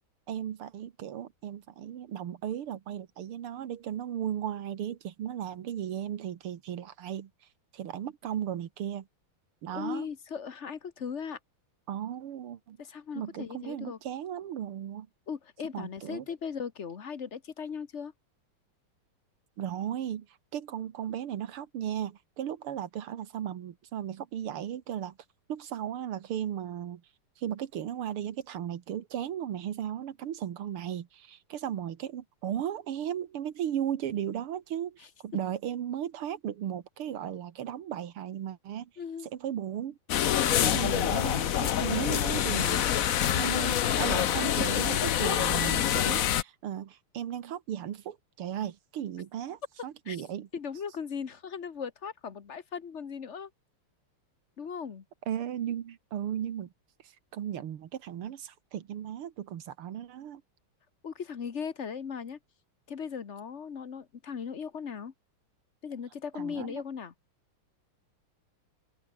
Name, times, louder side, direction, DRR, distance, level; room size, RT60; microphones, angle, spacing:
voice 1, 0.3-7.3 7.7-9.1 9.6-10.1 11.9-12.8 13.1-15.1 15.7-16.3 19.6-20.3 20.5-25.2 25.5-27.0 27.4-38.9 39.2-40.0 40.6-50.5 55.3-56.7 57.0-60.4 66.3-66.8, right 10 dB, 85° right, 2.3 m, -36 dB
voice 2, 9.7-11.4 12.8-14.0 15.3-18.1 39.0-39.3 50.1-50.2 50.5-53.5 54.6-55.0 61.0-62.4 62.9-65.1 65.8-67.1, left 6 dB, 40° left, 1.2 m, -38 dB
sound 1, 40.1-46.4, left 10 dB, 60° left, 0.9 m, -26 dB
open air
omnidirectional pair, 2.3 m